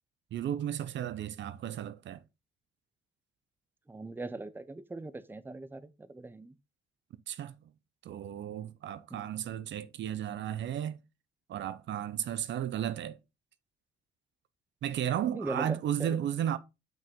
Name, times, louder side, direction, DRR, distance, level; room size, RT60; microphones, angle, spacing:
voice 1, 0.3-2.2 7.3-7.6 8.0-11.0 11.5-13.2 14.8-16.6, right 10 dB, 65° right, 0.7 m, -34 dB
voice 2, 3.9-6.5 9.1-9.2 15.3-16.2, right 2 dB, 10° right, 0.7 m, -40 dB
6.0 x 5.4 x 3.6 m
cardioid pair, 90°, 20 cm